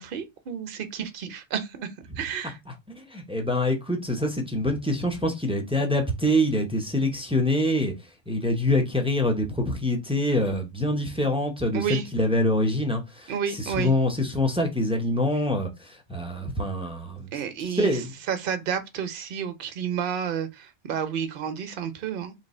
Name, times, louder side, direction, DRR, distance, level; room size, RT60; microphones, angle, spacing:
voice 1, 0.0-2.6 11.7-12.1 13.3-13.9 17.3-18.0 18.3-22.3, right 7 dB, 55° right, 0.8 m, -31 dB
voice 2, 2.9-7.9 8.3-17.3 17.6-18.1, left 1 dB, 5° right, 0.5 m, -25 dB
3.2 x 3.0 x 4.2 m
omnidirectional pair, 1.2 m